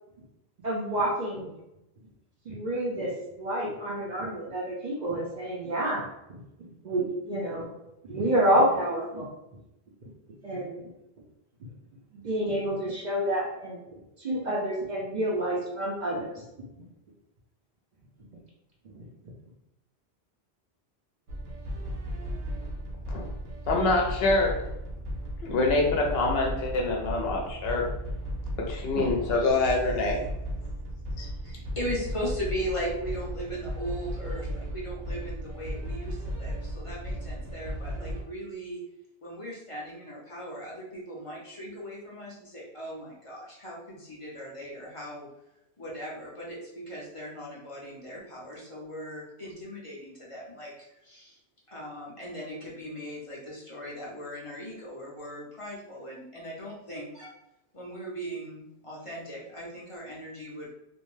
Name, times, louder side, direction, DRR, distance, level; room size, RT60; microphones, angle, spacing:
voice 1, 0.6-1.5 2.5-6.4 6.8-7.7 8.0-9.3 10.4-10.8 12.1-13.8 14.2-16.4 18.9-19.0, right 1 dB, 50° right, -4 dB, 0.6 m, -28 dB
sound 1, 21.3-38.2, equal, 85° right, 0.9 m, -35 dB
voice 2, 23.7-24.6 25.4-27.9 28.6-30.2 31.2-31.3, left 2 dB, 70° left, 0 dB, 0.8 m, -25 dB
voice 3, 31.4-38.8 39.2-45.3 45.8-51.4 51.7-57.3 57.7-60.7, equal, 35° left, -5 dB, 0.6 m, -38 dB
2.5 x 2.1 x 3.1 m, 0.89 s
omnidirectional pair, 1.1 m